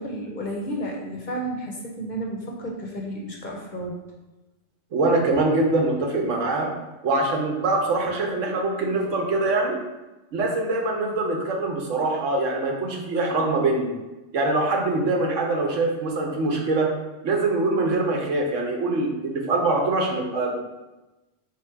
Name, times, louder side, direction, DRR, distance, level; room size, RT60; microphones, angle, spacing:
voice 1, 0.0-4.0, right 1 dB, 50° left, -1 dB, 0.6 m, -32 dB
voice 2, 4.9-6.7 7.0-9.8 10.3-13.9 14.3-16.9 17.2-20.6, right 2 dB, 85° right, 1 dB, 1.2 m, -23 dB
3.7 x 3.1 x 4.4 m, 1.1 s
omnidirectional pair, 1.2 m